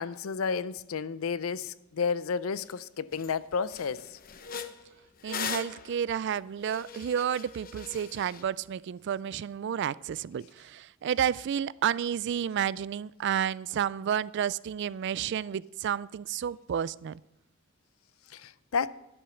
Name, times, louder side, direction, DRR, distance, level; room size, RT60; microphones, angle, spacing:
voice 1, 0.0-4.2 18.3-19.0, left 5 dB, 85° left, 0.5 m, -32 dB
sound 1, 2.7-2.8 3.1-3.3 3.7-8.4, left 7 dB, 45° left, 0.7 m, -40 dB
voice 2, 5.2-17.2, right 8 dB, 55° right, 0.3 m, -31 dB
11.5 x 7.9 x 7.0 m
head